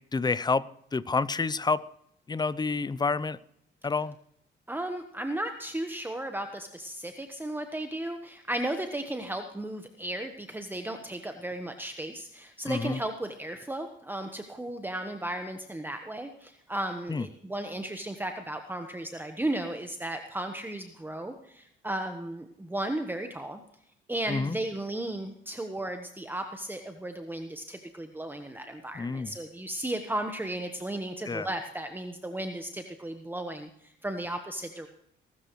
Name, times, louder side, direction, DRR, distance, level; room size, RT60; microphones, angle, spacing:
voice 1, 0.1-1.8 2.3-3.4 3.8-4.1 12.6-13.0 17.1-17.3 24.3-24.6 28.9-29.3 31.3-31.5, left 4 dB, 20° left, 18 dB, 0.6 m, -29 dB
voice 2, 4.7-23.6 24.1-34.9, right 1 dB, 10° right, 6 dB, 1.2 m, -35 dB
20.0 x 12.5 x 3.1 m, 0.73 s
cardioid pair, 90°, 20 cm